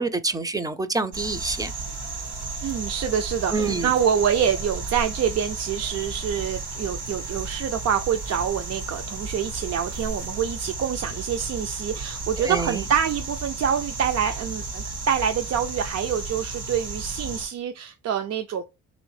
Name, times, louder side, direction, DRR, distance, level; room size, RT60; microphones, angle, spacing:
voice 1, 0.0-1.7 3.5-3.9 12.4-12.8, right 3 dB, 10° right, 0.5 m, -27 dB
sound 1, 1.1-17.4, right 3 dB, 75° right, 2.0 m, -33 dB
voice 2, 2.6-18.6, right 8 dB, 60° right, 0.6 m, -26 dB
3.4 x 3.1 x 4.7 m
cardioid pair, 90°, 30 cm